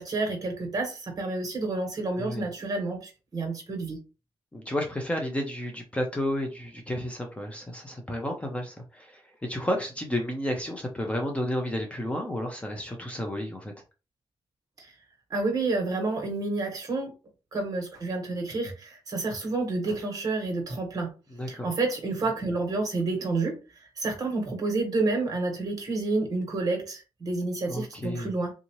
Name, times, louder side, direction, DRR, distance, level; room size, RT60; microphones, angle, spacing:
voice 1, 0.0-4.0 14.8-14.9 15.3-17.1 17.5-21.1 21.5-28.5, right 3 dB, 40° right, 1.4 m, -29 dB
voice 2, 4.5-13.7 21.3-21.7 27.7-28.3, left 1 dB, 15° left, 0.6 m, -32 dB
3.6 x 2.8 x 3.0 m
wide cardioid pair, 145°, 10 cm